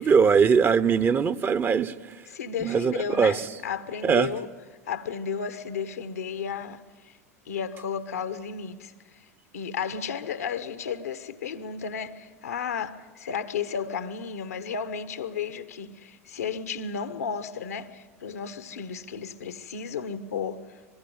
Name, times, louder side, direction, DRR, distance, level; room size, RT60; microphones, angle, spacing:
voice 1, 0.0-1.9 2.6-3.3 4.0-4.3, right 6 dB, 25° right, 1.0 m, -21 dB
voice 2, 2.3-4.5 4.9-7.1 7.5-8.9 9.5-20.8, left 6 dB, 80° left, 1.3 m, -33 dB
24.0 x 22.0 x 9.3 m
hypercardioid pair, 90°, 8 cm